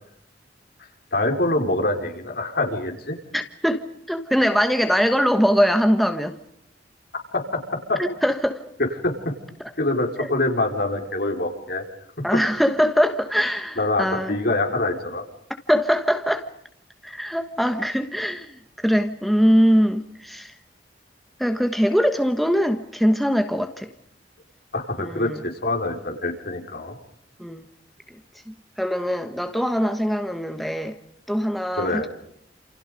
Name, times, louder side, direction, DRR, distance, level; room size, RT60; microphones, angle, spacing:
voice 1, 1.1-3.2 7.3-7.4 7.9-8.0 9.0-9.1 9.8-11.8 13.8-15.2 24.7-26.9 31.8-32.1, left 2 dB, 55° left, 5.1 m, -25 dB
voice 2, 3.3-3.8 4.1-6.4 8.0-8.6 10.2-10.3 12.2-14.4 15.7-16.5 17.0-20.6 21.4-23.9 25.0-25.4 27.4-27.6 28.5-31.0 31.3-32.1, equal, ahead, 1.3 m, -22 dB
29.0 x 28.5 x 5.2 m
head